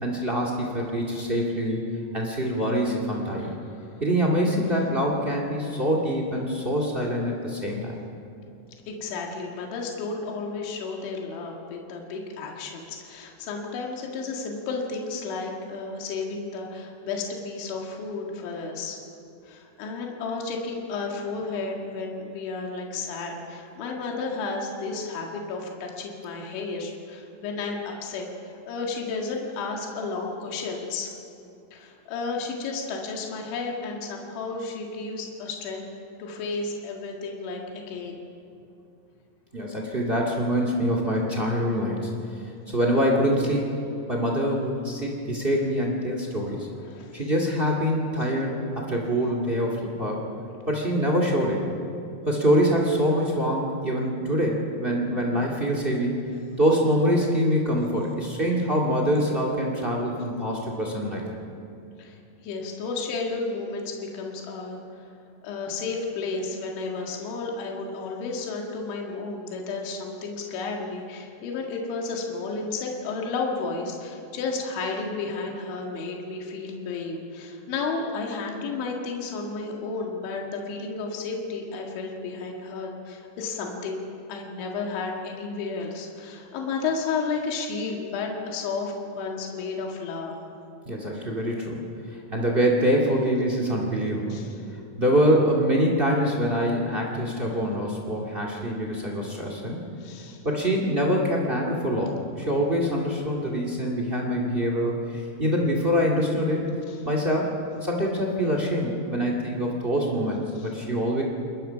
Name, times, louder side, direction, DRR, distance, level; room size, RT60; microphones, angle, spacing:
voice 1, 0.0-1.8 2.1-3.5 4.0-7.9 39.5-42.1 42.7-43.7 44.1-46.7 47.1-50.3 50.7-51.7 52.2-56.2 56.6-61.3 90.8-91.8 92.3-94.4 95.0-99.8 100.4-106.7 107.0-107.5 107.8-111.2, equal, 90° right, 0 dB, 0.5 m, -25 dB
voice 2, 8.9-19.0 19.5-31.1 31.7-35.9 36.2-38.1 46.8-47.2 62.0-62.2 62.4-64.8 65.4-84.0 84.3-90.4 94.3-94.5 100.0-100.4 110.6-110.7, left 4 dB, 80° left, 0 dB, 4.3 m, -32 dB
29.0 x 21.0 x 5.8 m, 2.6 s
omnidirectional pair, 5.3 m